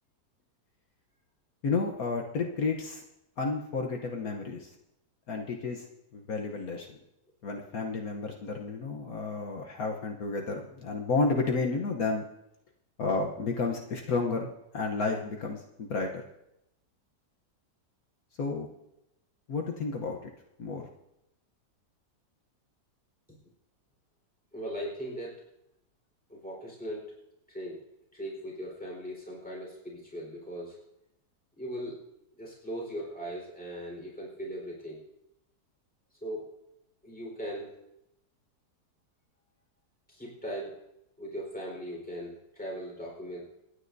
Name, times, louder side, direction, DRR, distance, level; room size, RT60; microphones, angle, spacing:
voice 1, 1.6-3.0 3.4-4.7 5.3-5.9 6.1-7.0 7.4-12.2 13.0-16.1 18.4-18.7 19.5-20.2 20.6-20.9, left 4 dB, 65° left, 1 dB, 1.4 m, -31 dB
voice 2, 24.5-25.4 26.3-27.2 27.5-27.8 28.1-30.8 31.6-32.0 32.4-35.0 36.2-36.5 37.0-37.7 40.1-40.8 41.2-43.4, equal, 5° left, -2 dB, 4.2 m, -39 dB
27.5 x 9.8 x 2.7 m, 0.85 s
omnidirectional pair, 1.7 m